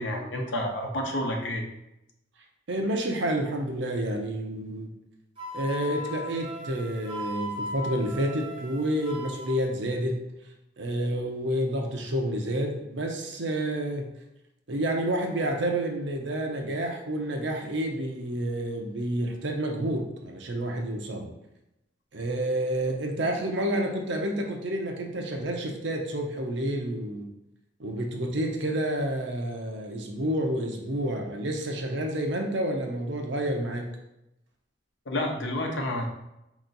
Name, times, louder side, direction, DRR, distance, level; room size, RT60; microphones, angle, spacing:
voice 1, 0.0-1.6 35.1-36.0, left 1 dB, 80° left, 1 dB, 0.9 m, -29 dB
voice 2, 2.7-4.9 5.5-10.2 10.8-14.1 14.7-21.3 22.1-27.3 27.8-33.9, right 1 dB, 70° right, 2 dB, 0.7 m, -29 dB
Wind instrument woodwind instrument, 5.4-9.6, left 1 dB, 30° right, 1.5 m, -38 dB
4.4 x 3.0 x 3.9 m, 0.88 s
head